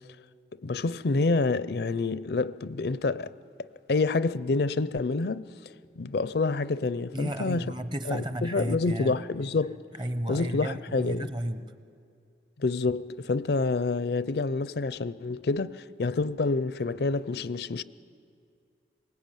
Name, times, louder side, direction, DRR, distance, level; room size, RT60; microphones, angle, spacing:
voice 1, 0.6-3.3 3.6-5.5 6.0-7.6 8.1-9.8 10.3-11.3 12.6-17.8, left 3 dB, 65° left, 0.5 m, -28 dB
voice 2, 7.1-9.2 10.0-11.7, right 1 dB, 25° right, 0.9 m, -33 dB
24.0 x 20.5 x 9.1 m
head